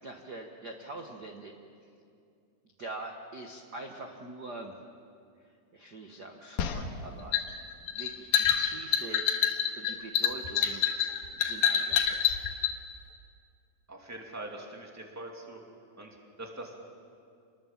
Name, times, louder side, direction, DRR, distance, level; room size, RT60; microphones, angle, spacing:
voice 1, 0.0-1.5 2.8-4.7 5.7-9.2 9.8-10.8 11.4-12.2, right 2 dB, 75° right, 3 dB, 0.9 m, -44 dB
sound 1, 6.6-12.7, left 8 dB, 80° left, 3.2 m, -27 dB
voice 2, 13.9-15.6 16.0-16.8, right 2 dB, 5° right, 1 dB, 1.8 m, -43 dB
28.0 x 21.0 x 7.4 m, 2.4 s
omnidirectional pair, 4.1 m